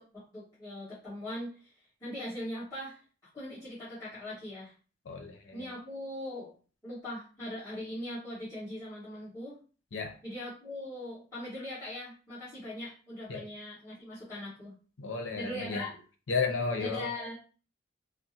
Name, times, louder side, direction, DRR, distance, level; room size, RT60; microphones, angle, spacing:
voice 1, 0.0-3.0 3.3-4.7 5.5-6.5 6.8-9.6 10.2-14.7 15.4-15.9 16.8-17.4, left 1 dB, 20° left, -13 dB, 1.3 m, -40 dB
voice 2, 5.1-5.7 9.9-10.1 13.3-13.4 15.0-15.8 16.3-17.1, left 4 dB, 85° left, 5 dB, 0.6 m, -33 dB
3.5 x 2.0 x 2.7 m, 0.37 s
head